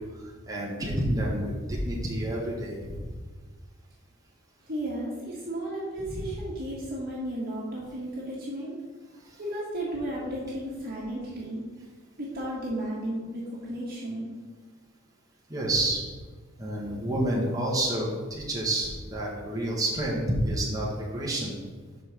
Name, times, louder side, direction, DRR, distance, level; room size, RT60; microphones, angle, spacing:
voice 1, 0.0-3.1 6.0-6.3 9.2-9.4 15.5-16.0 16.6-21.5, right 1 dB, 15° right, -5 dB, 1.5 m, -29 dB
voice 2, 4.7-8.8 9.4-11.6 12.2-14.3, right 1 dB, 50° right, -6 dB, 1.7 m, -34 dB
5.5 x 5.4 x 6.6 m, 1.4 s
head